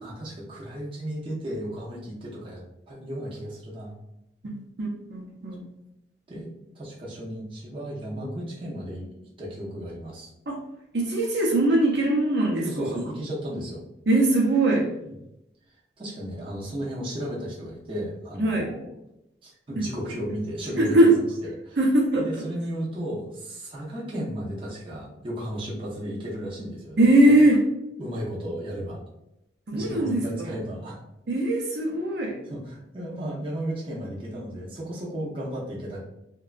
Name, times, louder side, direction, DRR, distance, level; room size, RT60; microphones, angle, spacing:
voice 1, 0.0-4.0 6.3-6.5 6.7-9.1 9.4-10.3 12.6-13.8 15.0-15.1 16.0-18.9 19.4-21.8 22.2-27.3 28.0-29.0 29.7-31.0 32.4-36.0, equal, 30° right, -5 dB, 0.7 m, -34 dB
voice 2, 4.4-5.6 10.5-10.6 10.9-12.9 14.1-14.9 18.4-18.7 19.8-19.9 20.8-21.1 21.8-22.4 27.0-27.6 29.7-30.5 31.3-32.4, right 1 dB, 70° right, -3 dB, 0.6 m, -21 dB
2.7 x 2.2 x 2.4 m, 0.85 s
head